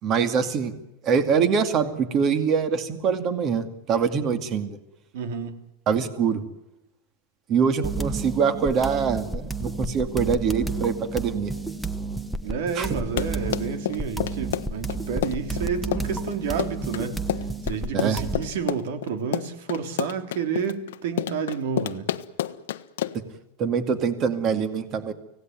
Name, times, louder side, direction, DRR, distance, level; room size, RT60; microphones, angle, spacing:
voice 1, 0.0-0.7 1.0-4.8 5.9-6.4 7.5-11.5 12.8-12.9 17.9-18.2 23.6-25.1, right 6 dB, 30° right, 2.3 m, -24 dB
voice 2, 5.1-5.6 12.4-17.2 17.6-22.1, right 6 dB, 65° right, 3.5 m, -30 dB
sound 1, 7.8-18.5, right 3 dB, ahead, 1.0 m, -31 dB
Run, 12.9-23.3, left 12 dB, 90° left, 1.2 m, -29 dB
25.5 x 17.5 x 9.5 m
supercardioid pair, 165°, 0 cm